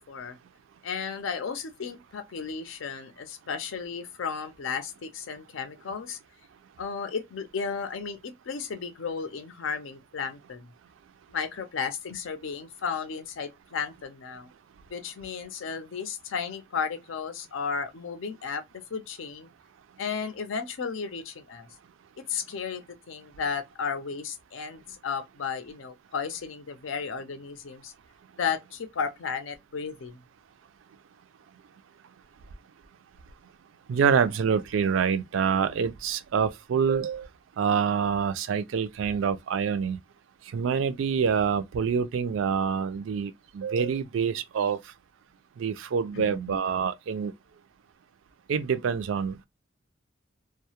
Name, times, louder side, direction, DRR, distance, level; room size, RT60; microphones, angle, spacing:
voice 1, 0.8-6.2 6.8-10.7 11.3-14.5 14.9-18.6 18.9-19.5 20.0-21.7 22.2-27.9 28.4-30.2 46.1-46.6, left 6 dB, 85° left, 0.5 m, -34 dB
voice 2, 33.9-37.3 37.6-40.0 40.5-44.8 45.6-47.3 48.5-49.5, right 6 dB, 80° right, 0.3 m, -26 dB
2.2 x 2.0 x 2.8 m
head